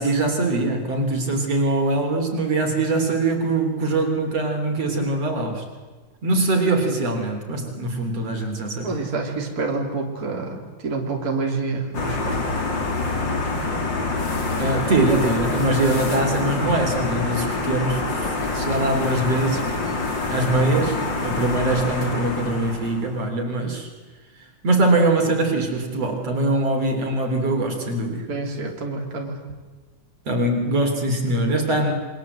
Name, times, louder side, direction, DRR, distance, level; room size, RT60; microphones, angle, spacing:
voice 1, 0.0-5.6 6.2-9.0 14.6-18.3 18.5-19.7 20.3-23.9 24.6-28.3 30.3-31.9, right 2 dB, 55° right, 3 dB, 4.3 m, -22 dB
voice 2, 8.8-12.5 28.3-29.4, right 3 dB, 30° right, 0 dB, 3.7 m, -28 dB
sound 1, 11.9-23.2, left 3 dB, 35° left, 3.7 m, -26 dB
28.0 x 24.5 x 8.1 m, 1.3 s
omnidirectional pair, 3.4 m